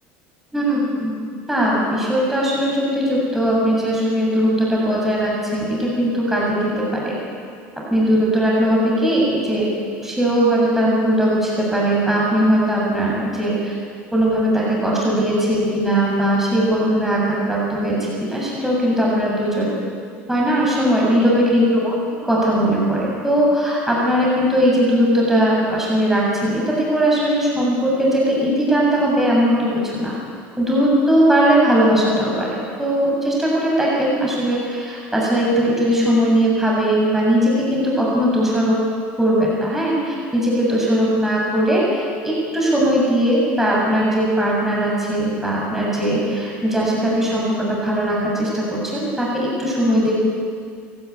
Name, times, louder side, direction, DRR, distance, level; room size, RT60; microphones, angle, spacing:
voice 1, 0.5-1.2 1.5-7.2 7.9-9.7 10.0-13.7 14.1-19.7 20.3-21.9 22.3-30.1 30.6-38.8 39.2-50.1, equal, 5° right, -4 dB, 7.3 m, -19 dB
28.5 x 13.0 x 9.6 m, 2.2 s
cardioid pair, 135°, 5 cm